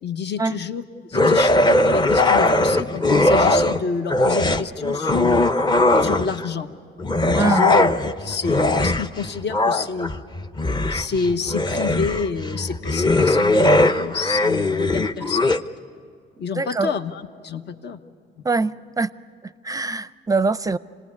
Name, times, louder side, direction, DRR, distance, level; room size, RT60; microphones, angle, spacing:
voice 1, 0.0-5.4 6.0-6.7 7.2-10.1 10.9-15.5 16.4-18.0, left 5 dB, 60° left, 8 dB, 1.1 m, -28 dB
sound 1, 1.1-3.8 4.1-6.5 7.0-15.6, left 2 dB, 20° left, 0.7 m, -19 dB
voice 2, 7.4-7.8 16.6-16.9 18.4-19.1 19.4-20.8, right 4 dB, 15° right, 15 dB, 0.5 m, -23 dB
26.0 x 19.0 x 9.6 m, 2.2 s
cardioid pair, 90°, 20 cm